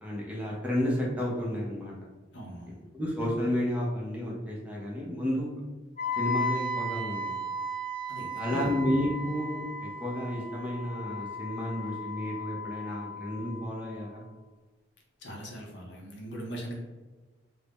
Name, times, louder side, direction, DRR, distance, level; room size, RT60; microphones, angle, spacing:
voice 1, 0.0-1.9 2.9-5.5 6.2-7.4 8.4-14.2, left 1 dB, 5° right, -4 dB, 0.5 m, -31 dB
voice 2, 2.3-2.8 8.1-8.8 15.2-16.7, right 1 dB, 65° left, -1 dB, 0.6 m, -40 dB
Wind instrument woodwind instrument, 6.0-13.9, left 1 dB, 35° left, 0.7 m, -36 dB
2.5 x 2.0 x 3.4 m, 1.2 s
head